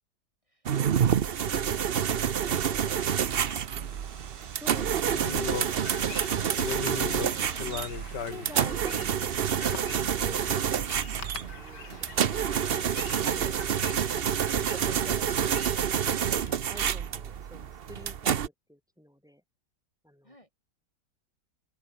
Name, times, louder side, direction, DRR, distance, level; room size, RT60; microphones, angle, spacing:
voice 1, 0.4-1.8 2.3-4.1 10.7-11.0 20.2-20.5, left 1 dB, 20° left, 5.0 m, -55 dB
sound 1, 0.7-18.5, right 8 dB, 50° right, 0.7 m, -28 dB
sound 2, 2.5-8.5, right 7 dB, 80° right, 2.5 m, -47 dB
voice 2, 4.5-6.3 7.1-7.7 8.3-10.7 11.1-12.8 13.2-13.6 14.7-15.7 16.7-19.4 20.0-20.3, equal, ahead, 6.2 m, -48 dB
sound 3, 5.1-16.5, left 6 dB, 80° left, 2.5 m, -41 dB
open air
omnidirectional pair, 1.8 m